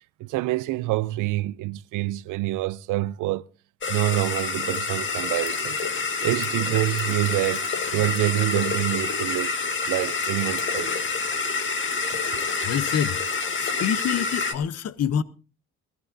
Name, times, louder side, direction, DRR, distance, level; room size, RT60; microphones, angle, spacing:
voice 1, 0.2-3.4 3.9-5.8 6.2-9.5 9.9-11.1, right 18 dB, 90° right, 0.6 m, -26 dB
sound 1, 3.8-14.5, left 4 dB, 40° left, 1.8 m, -27 dB
voice 2, 12.6-15.2, left 8 dB, 55° left, 0.8 m, -27 dB
21.5 x 15.0 x 2.7 m
cardioid pair, 90°, 30 cm